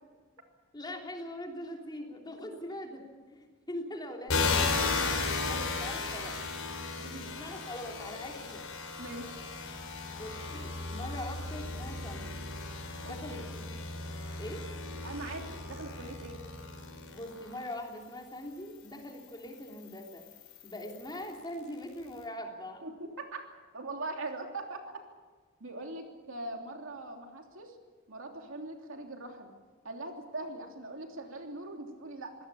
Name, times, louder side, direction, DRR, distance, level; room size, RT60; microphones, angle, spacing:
voice 1, 0.7-5.0 5.5-6.4 7.2-8.7 10.1-12.5 13.0-14.0 14.4-14.7 17.1-20.2 20.6-22.8, left 1 dB, 20° left, 1 dB, 3.4 m, -42 dB
sound 1, 4.3-17.7 18.4-21.3, left 4 dB, 80° left, 4.6 m, -35 dB
voice 2, 7.0-7.4 9.0-9.3 13.0-13.4 15.0-16.4 22.8-25.0 25.6-27.7 28.1-29.5 29.8-32.3, right 2 dB, 65° right, 2 dB, 3.2 m, -41 dB
25.0 x 18.0 x 7.2 m, 1.4 s
head